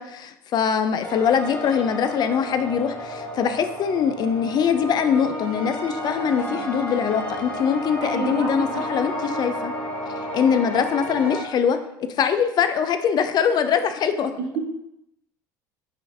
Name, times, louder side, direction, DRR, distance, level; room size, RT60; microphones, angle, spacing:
voice 1, 0.0-9.7 10.3-14.3, left 7 dB, 45° left, 9 dB, 0.4 m, -23 dB
sound 1, 1.0-11.4, equal, 15° left, 1.0 m, -31 dB
voice 2, 8.0-8.9, right 3 dB, 65° right, 1 dB, 0.9 m, -29 dB
5.6 x 2.5 x 2.6 m, 0.87 s
hypercardioid pair, 75°, 10 cm